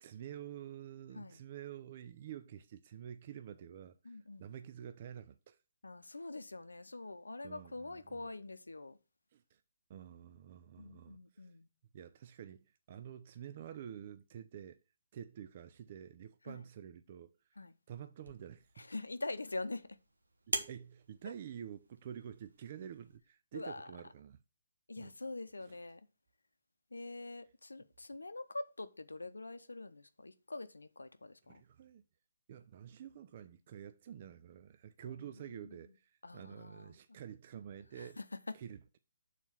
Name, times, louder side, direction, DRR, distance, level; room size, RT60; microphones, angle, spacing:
voice 1, 0.0-5.6 7.4-8.3 9.3-9.6 9.9-11.5 11.9-14.8 15.1-17.3 17.9-18.9 20.6-24.4 25.0-25.1 25.6-25.8 31.5-32.0 32.5-38.2 38.5-39.0, right 9 dB, 40° right, 0.5 m, -49 dB
voice 2, 4.0-4.4 5.8-9.0 10.8-11.7 16.5-16.6 17.6-17.7 18.8-20.0 21.2-21.3 23.5-23.9 24.9-26.0 26.9-31.6 35.0-35.8 36.2-37.0 37.9-38.6, left 2 dB, 85° left, 0.6 m, -45 dB
sound 1, 18.2-23.2, right 2 dB, 80° right, 1.3 m, -45 dB
7.2 x 4.1 x 6.0 m
figure-of-eight pair, 140°, 0 cm